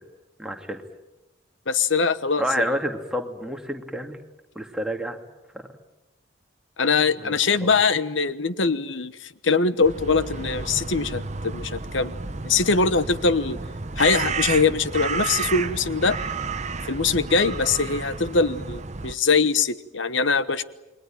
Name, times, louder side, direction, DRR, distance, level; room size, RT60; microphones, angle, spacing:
voice 1, 0.4-0.8 2.4-4.2 4.6-5.2 7.2-7.7, equal, 5° right, 3 dB, 2.4 m, -29 dB
voice 2, 1.7-2.7 6.8-12.1 12.4-13.6 14.0-16.2 16.9-20.6, left 4 dB, 75° left, 13 dB, 1.1 m, -22 dB
sound 1, 9.8-19.1, right 4 dB, 35° right, 0.9 m, -31 dB
29.0 x 22.5 x 9.1 m, 0.99 s
head